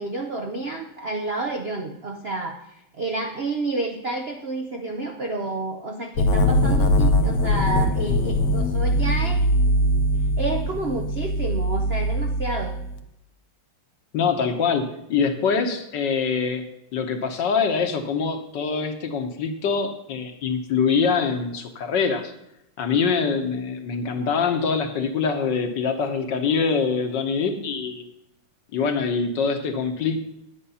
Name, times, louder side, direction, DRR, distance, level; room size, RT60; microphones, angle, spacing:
voice 1, 0.0-9.5 10.4-12.8, right 3 dB, 55° right, 4 dB, 0.7 m, -30 dB
sound 1, 6.2-13.0, equal, 80° left, 1.7 m, -21 dB
voice 2, 14.1-16.7 16.9-22.3 22.8-28.0 28.7-30.2, left 5 dB, 65° left, 6 dB, 1.7 m, -24 dB
10.0 x 8.6 x 5.6 m, 0.83 s
omnidirectional pair, 2.2 m